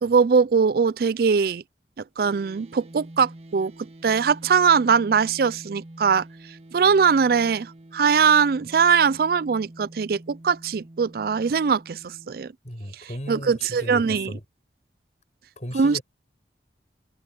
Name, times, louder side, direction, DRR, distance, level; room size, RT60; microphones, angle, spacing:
voice 1, 0.0-1.6 2.2-3.7 4.0-6.2 6.7-12.5 13.3-14.3 15.7-16.0, right 6 dB, 55° right, 0.4 m, -21 dB
sound 1, 2.2-12.5, right 1 dB, 35° right, 1.7 m, -46 dB
voice 2, 12.6-14.4 15.6-16.0, equal, 40° left, 7.1 m, -36 dB
head